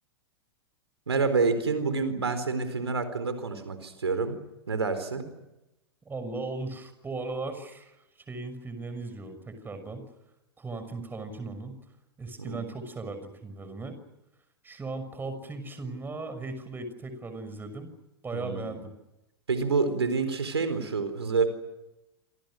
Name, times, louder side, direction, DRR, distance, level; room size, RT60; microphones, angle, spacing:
voice 1, 1.1-4.4 4.7-5.3 12.4-12.7 18.3-18.7 19.5-21.5, right 4 dB, 85° right, 10 dB, 4.1 m, -28 dB
voice 2, 6.0-7.9 8.3-10.1 10.6-11.8 12.2-14.0 14.6-17.9 18.2-18.9, right 3 dB, 15° right, 9 dB, 6.1 m, -37 dB
27.5 x 26.5 x 6.4 m, 0.95 s
figure-of-eight pair, 100°, 13 cm